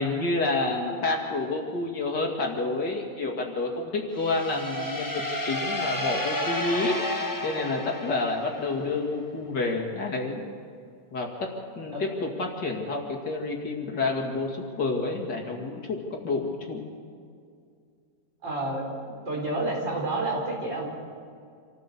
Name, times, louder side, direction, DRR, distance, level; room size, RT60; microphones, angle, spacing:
voice 1, 0.0-6.9 7.4-10.4 11.1-11.5 11.8-16.8, left 3 dB, 60° left, 1 dB, 2.9 m, -29 dB
sound 1, 4.2-8.9, left 1 dB, 15° left, 0.8 m, -31 dB
voice 2, 18.4-20.9, right 2 dB, 65° right, -1 dB, 5.2 m, -30 dB
26.5 x 14.5 x 6.9 m, 2.3 s
omnidirectional pair, 2.2 m